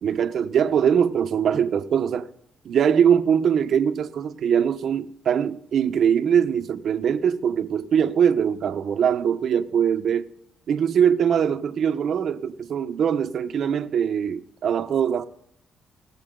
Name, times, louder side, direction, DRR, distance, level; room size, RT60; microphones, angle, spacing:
voice 1, 0.0-2.3 2.6-10.3 10.7-15.2, right 8 dB, 60° right, 1.0 m, -22 dB
19.5 x 7.5 x 3.8 m
cardioid pair, 90°, 0 cm